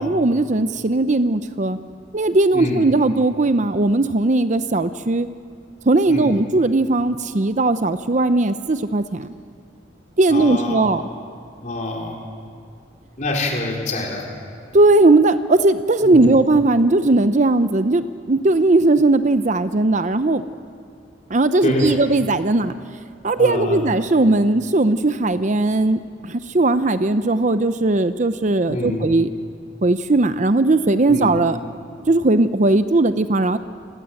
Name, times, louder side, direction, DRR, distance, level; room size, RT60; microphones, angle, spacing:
voice 1, 0.0-1.8 2.1-5.3 5.9-9.3 10.2-11.0 14.7-20.4 21.3-22.7 23.2-29.3 29.8-31.6 32.1-33.6, right 2 dB, 40° right, 11 dB, 0.6 m, -18 dB
voice 2, 2.5-2.9 6.1-6.3 10.3-11.0 11.6-12.2 13.2-14.3 16.0-16.3 21.6-22.0 23.4-23.8 28.7-29.1 31.1-31.3, left 1 dB, 40° left, -1 dB, 4.4 m, -25 dB
29.5 x 19.0 x 7.8 m, 2.2 s
head